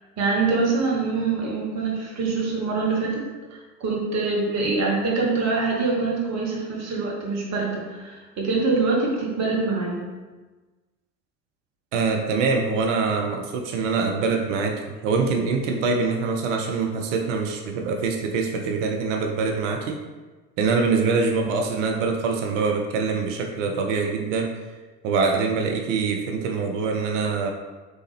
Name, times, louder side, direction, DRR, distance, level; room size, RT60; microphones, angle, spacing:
voice 1, 0.2-3.2 3.5-10.1, right 3 dB, 35° right, -2 dB, 1.2 m, -24 dB
voice 2, 11.9-20.0 20.6-24.6 25.0-27.5, right 4 dB, 50° right, 3 dB, 0.6 m, -24 dB
4.1 x 3.3 x 3.3 m, 1.3 s
figure-of-eight pair, 70°, 47 cm